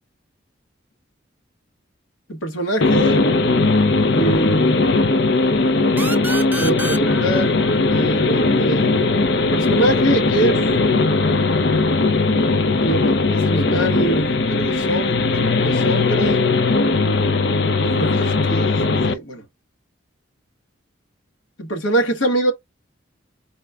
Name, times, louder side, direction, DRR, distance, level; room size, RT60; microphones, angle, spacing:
voice 1, 2.3-3.2 4.1-4.8 6.6-7.6 7.9-9.2 9.5-10.6 12.8-16.5 17.8-19.4 21.6-22.5, right 1 dB, 85° left, 1.2 m, -24 dB
sound 1, 2.8-19.1, left 3 dB, 55° left, 0.5 m, -18 dB
sound 2, 6.0-9.4, right 2 dB, 10° right, 0.3 m, -31 dB
4.1 x 2.2 x 3.5 m
head